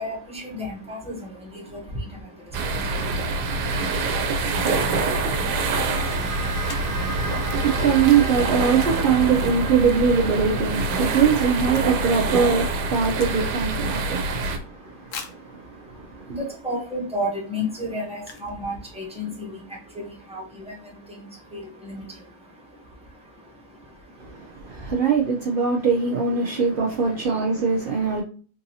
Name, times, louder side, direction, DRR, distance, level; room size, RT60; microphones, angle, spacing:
voice 1, 0.0-7.8 13.9-25.1 26.4-26.7 27.1-27.5 27.8-28.2, left 1 dB, 5° right, 0.9 m, -36 dB
sound 1, 2.5-14.6, right 3 dB, 90° right, 1.2 m, -25 dB
sound 2, 5.1-15.7, right 1 dB, 35° right, 1.2 m, -37 dB
sound 3, 6.6-7.0 9.9-10.2 10.5-10.6 10.8-12.3 12.5-13.8 14.2-14.3 15.1-15.5 16.2-16.3 16.8-17.0 18.2-18.6 18.9-19.0 19.2-19.5, left 5 dB, 65° left, 1.0 m, -41 dB
voice 2, 7.0-16.4 24.2-28.2, right 6 dB, 70° right, 0.5 m, -22 dB
3.7 x 2.6 x 2.7 m
omnidirectional pair, 1.7 m